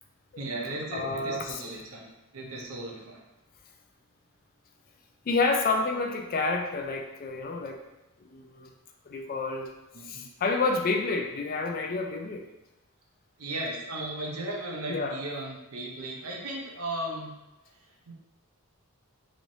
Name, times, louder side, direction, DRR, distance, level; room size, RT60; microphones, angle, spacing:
voice 1, 0.4-2.1 2.3-3.2 9.9-10.3 13.4-17.3 18.1-18.2, right 1 dB, 75° right, -2 dB, 0.7 m, -36 dB
voice 2, 0.9-1.6 5.3-7.8 8.2-8.7 9.1-9.7 10.0-12.4 14.9-15.2, left 3 dB, 40° left, 2 dB, 0.4 m, -29 dB
3.0 x 3.0 x 2.6 m, 0.99 s
head